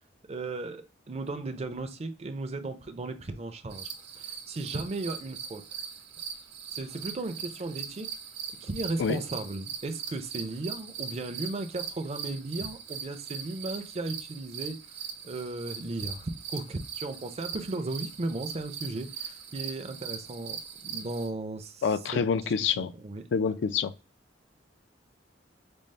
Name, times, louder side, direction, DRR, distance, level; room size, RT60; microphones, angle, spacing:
voice 1, 0.3-5.7 6.7-8.2 8.6-14.8 15.2-21.8 22.1-23.3, right 2 dB, 35° right, 0.5 m, -36 dB
sound 1, 3.7-21.3, right 7 dB, 60° right, 0.9 m, -40 dB
voice 2, 21.8-22.9 23.3-23.9, left 6 dB, 70° left, 0.3 m, -27 dB
5.2 x 2.0 x 3.1 m
head